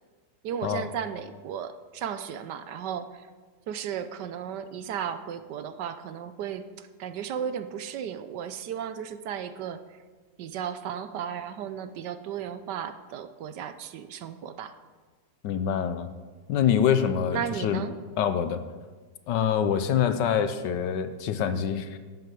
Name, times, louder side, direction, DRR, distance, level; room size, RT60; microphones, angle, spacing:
voice 1, 0.4-3.3 3.7-10.0 10.4-14.7 17.3-17.9, right 8 dB, 70° right, 11 dB, 1.2 m, -35 dB
voice 2, 15.4-16.1 16.5-17.8 18.2-18.6 19.3-22.0, left 8 dB, 75° left, 11 dB, 1.4 m, -25 dB
11.5 x 8.0 x 7.5 m, 1.4 s
omnidirectional pair, 2.0 m